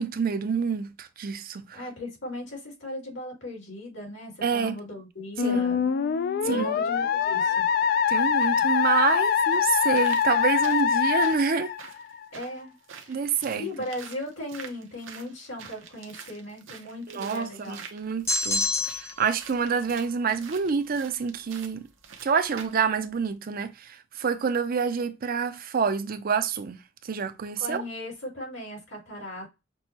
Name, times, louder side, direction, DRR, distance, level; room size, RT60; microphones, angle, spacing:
voice 1, 0.0-1.8 4.4-4.7 5.4-5.6 6.4-6.8 8.1-11.7 13.1-13.7 17.1-18.7 18.9-21.8 22.2-26.8 27.0-27.8, right 6 dB, 50° right, 0.5 m, -27 dB
voice 2, 1.7-5.9 6.4-7.7 12.3-12.7 13.0-17.8 27.6-29.5, left 1 dB, 75° left, 2.4 m, -38 dB
Musical instrument, 5.4-12.2, left 7 dB, 50° left, 0.3 m, -24 dB
sound 1, 8.4-8.5 9.3-22.9 23.3-23.4, right 6 dB, 90° right, 0.8 m, -47 dB
sound 2, 18.3-19.3, left 2 dB, 15° left, 0.6 m, -26 dB
6.1 x 2.2 x 2.8 m
head